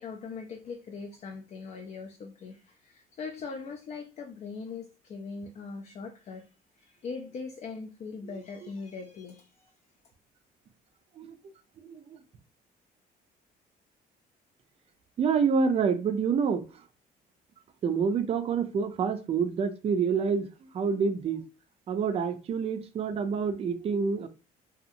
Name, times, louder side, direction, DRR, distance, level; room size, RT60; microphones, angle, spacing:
voice 1, 0.0-6.5 6.8-9.7, left 4 dB, 40° left, 0.4 m, -41 dB
voice 2, 15.2-16.6 17.8-21.4 21.9-24.3, right 6 dB, 35° right, 0.4 m, -27 dB
2.7 x 2.3 x 2.5 m
cardioid pair, 110°, 17 cm